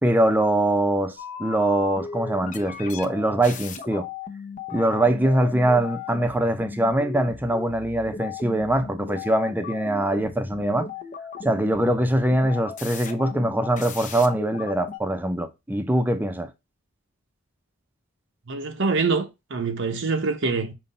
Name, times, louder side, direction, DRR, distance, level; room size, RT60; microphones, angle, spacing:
voice 1, 0.0-4.1 4.7-10.9 11.4-16.5, right 1 dB, 10° right, 0.6 m, -23 dB
sound 1, 1.2-15.0, left 5 dB, 40° left, 0.7 m, -37 dB
voice 2, 18.5-20.7, right 4 dB, 65° right, 0.8 m, -25 dB
5.6 x 3.1 x 5.4 m
head